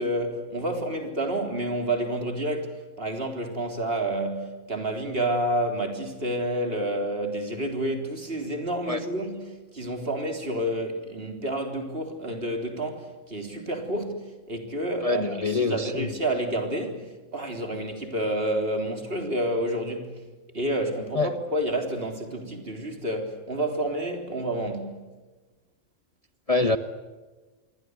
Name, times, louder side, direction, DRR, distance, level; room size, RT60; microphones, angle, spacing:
voice 1, 0.0-20.2 20.5-25.0, right 1 dB, 45° right, 4.0 m, -29 dB
voice 2, 15.0-16.1 21.1-21.3 26.5-26.8, left 3 dB, 30° left, 1.0 m, -25 dB
27.5 x 23.0 x 8.1 m
omnidirectional pair, 1.4 m